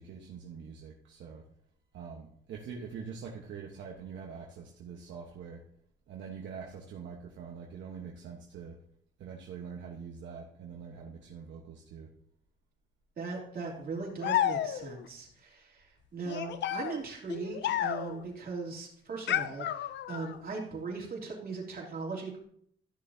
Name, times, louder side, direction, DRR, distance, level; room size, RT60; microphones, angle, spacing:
voice 1, 0.0-1.5 1.9-5.6 6.1-8.8 9.2-12.1, right 6 dB, 70° right, -1 dB, 1.2 m, -44 dB
voice 2, 13.2-22.4, right 4 dB, 50° right, -2 dB, 3.0 m, -39 dB
sound 1, 14.2-15.1 16.3-18.3 19.3-20.4, left 11 dB, 65° left, 0.5 m, -32 dB
13.5 x 6.5 x 2.8 m, 0.66 s
cardioid pair, 90°, 20 cm